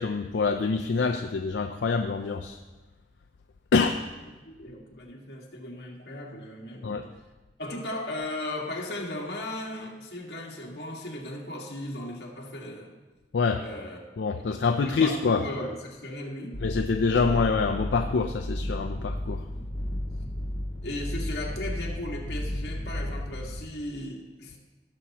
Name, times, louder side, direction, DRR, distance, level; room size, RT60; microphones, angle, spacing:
voice 1, 0.0-2.6 3.7-4.0 6.8-7.0 13.3-13.6 14.2-15.4 16.6-19.4, left 4 dB, 85° left, 5 dB, 0.5 m, -26 dB
voice 2, 4.4-7.0 7.6-12.9 13.6-14.0 14.8-16.6 19.5-19.7 20.8-24.6, left 1 dB, 65° left, -2 dB, 1.8 m, -36 dB
sound 1, 16.5-23.6, left 1 dB, 35° left, 1.4 m, -33 dB
16.0 x 7.0 x 3.0 m, 1.2 s
head